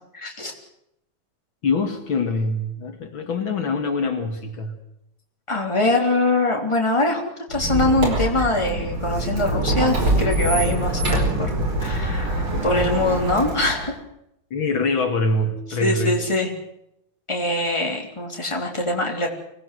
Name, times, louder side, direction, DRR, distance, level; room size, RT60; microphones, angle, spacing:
voice 1, 0.1-0.5 5.5-7.2 7.5-11.5 11.8-13.9 15.8-16.5 17.3-19.3, left 2 dB, 15° left, 0 dB, 3.7 m, -23 dB
voice 2, 1.6-4.8 12.5-12.8 14.5-16.2, left 3 dB, 70° left, 5 dB, 2.9 m, -24 dB
Squeak, 7.5-13.9, right 1 dB, 85° right, 5.7 m, -24 dB
24.5 x 18.0 x 7.8 m, 0.80 s
omnidirectional pair, 2.2 m